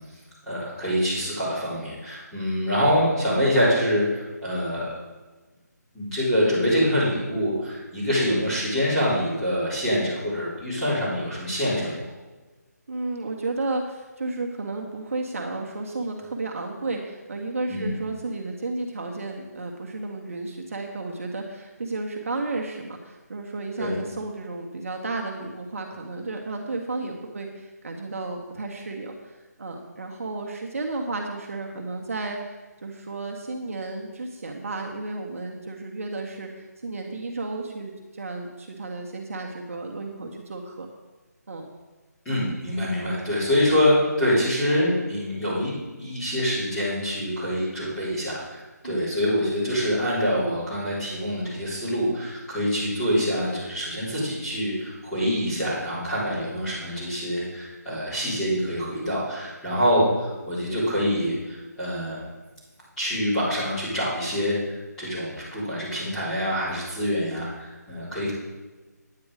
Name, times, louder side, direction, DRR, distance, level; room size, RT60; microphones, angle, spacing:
voice 1, 0.5-4.9 5.9-12.0 17.7-17.9 23.8-23.9 42.2-45.7 46.0-62.2 63.0-68.3, equal, 5° left, -13 dB, 4.0 m, -25 dB
voice 2, 12.9-40.9 41.5-41.6 48.8-49.0, right 2 dB, 50° right, 2 dB, 1.4 m, -33 dB
9.7 x 9.7 x 5.0 m, 1.2 s
hypercardioid pair, 170°, 9 cm